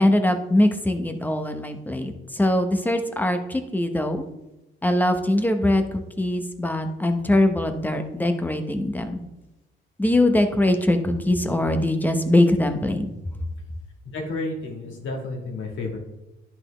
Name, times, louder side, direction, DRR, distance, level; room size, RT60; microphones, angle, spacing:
voice 1, 0.0-4.3 4.8-9.2 10.0-13.1, left 1 dB, 10° left, 6 dB, 0.9 m, -22 dB
voice 2, 14.1-16.0, left 2 dB, 75° left, 0 dB, 2.0 m, -31 dB
10.5 x 4.3 x 3.3 m, 0.95 s
cardioid pair, 90°, 20 cm